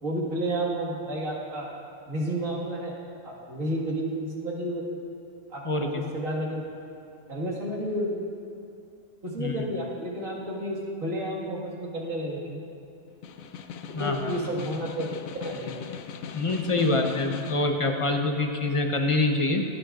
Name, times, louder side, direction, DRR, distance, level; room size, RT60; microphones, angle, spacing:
voice 1, 0.0-1.7 2.1-2.9 3.2-4.8 5.5-6.6 7.3-8.2 9.2-12.6 14.0-15.7, right 1 dB, 70° right, -3 dB, 2.3 m, -31 dB
voice 2, 5.6-6.1 9.4-9.5 13.9-14.3 16.3-19.6, left 2 dB, 30° left, 3 dB, 0.8 m, -25 dB
Snare drum, 13.1-17.7, left 7 dB, 80° left, 1.0 m, -39 dB
24.5 x 9.3 x 2.5 m, 2.7 s
omnidirectional pair, 1.4 m